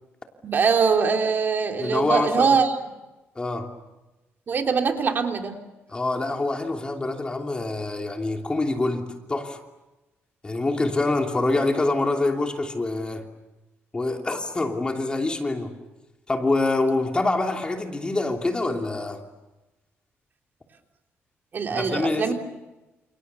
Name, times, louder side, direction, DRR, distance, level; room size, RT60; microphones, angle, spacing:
voice 1, 0.4-2.7 4.5-5.5 21.5-22.3, right 5 dB, 45° right, 3 dB, 3.4 m, -22 dB
voice 2, 1.8-2.5 3.3-3.7 5.9-9.6 10.4-13.2 13.9-15.7 16.3-19.2 21.7-22.3, left 2 dB, 20° left, 3 dB, 3.0 m, -25 dB
29.5 x 29.0 x 7.0 m, 1.1 s
cardioid pair, 120°, 5 cm